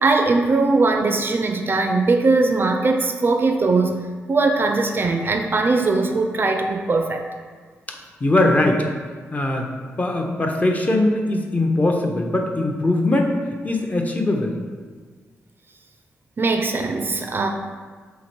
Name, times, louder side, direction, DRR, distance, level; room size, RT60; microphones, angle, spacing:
voice 1, 0.0-7.2 16.4-17.5, right 3 dB, 40° right, 4 dB, 0.4 m, -20 dB
voice 2, 7.9-8.9 9.3-9.7 10.0-13.3 13.6-14.6, left 2 dB, 30° left, 2 dB, 0.6 m, -21 dB
2.9 x 2.5 x 4.3 m, 1.5 s
supercardioid pair, 50°, 5 cm